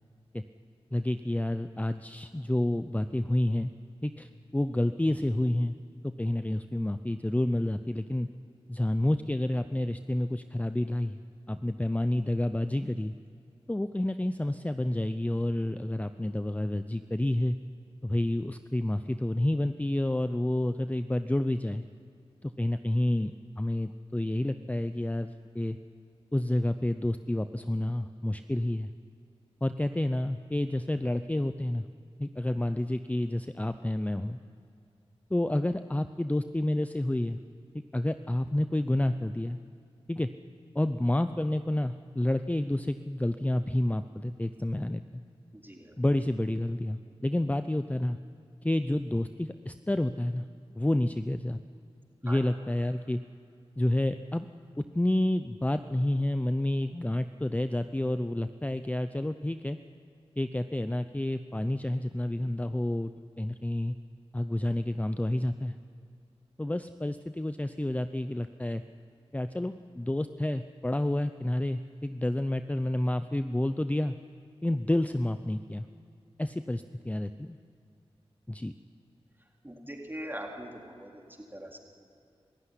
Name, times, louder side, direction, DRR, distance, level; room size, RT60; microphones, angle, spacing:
voice 1, 0.9-3.7 4.0-5.7 6.0-8.3 8.7-11.2 11.5-13.1 13.7-17.6 18.0-21.8 22.4-25.8 26.3-28.9 29.6-31.8 32.2-34.4 35.3-37.4 37.9-39.6 40.1-40.3 40.7-45.2 46.0-48.2 48.6-50.4 50.8-51.6 52.2-53.2 53.8-54.5 54.8-59.8 60.4-63.1 63.4-64.0 64.3-65.8 66.6-68.8 69.3-74.2 74.6-75.9 76.4-77.6 78.5-78.7, left 1 dB, 15° left, 10 dB, 0.6 m, -29 dB
voice 2, 45.6-45.9 52.3-52.4 79.6-81.2 81.5-81.8, equal, 20° right, 0 dB, 3.9 m, -41 dB
25.5 x 15.0 x 9.9 m, 2.5 s
cardioid pair, 45°, 11 cm